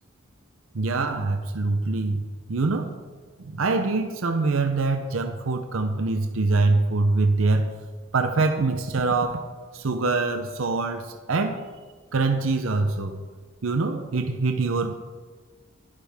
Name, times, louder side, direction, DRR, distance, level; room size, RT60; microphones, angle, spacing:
voice 1, 0.7-2.2 2.5-2.9 3.4-7.7 8.1-9.4 9.7-11.6 12.1-13.2 13.6-14.9, right 3 dB, 85° right, 0.7 m, -24 dB
11.5 x 11.0 x 3.5 m
head